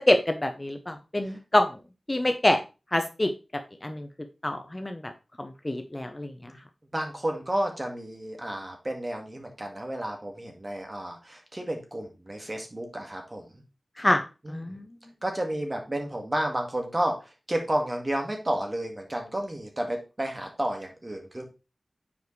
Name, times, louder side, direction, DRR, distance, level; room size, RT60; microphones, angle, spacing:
voice 1, 0.0-1.7 2.1-2.6 2.9-3.3 3.8-4.1 4.4-5.0 5.4-6.3 14.0-14.2 14.5-14.8, left 1 dB, 25° left, 6 dB, 0.7 m, -25 dB
voice 2, 6.9-13.6 14.4-14.7 15.2-21.5, right 1 dB, 30° right, 3 dB, 1.7 m, -31 dB
7.1 x 4.9 x 3.2 m, 0.29 s
wide cardioid pair, 65°, 0 cm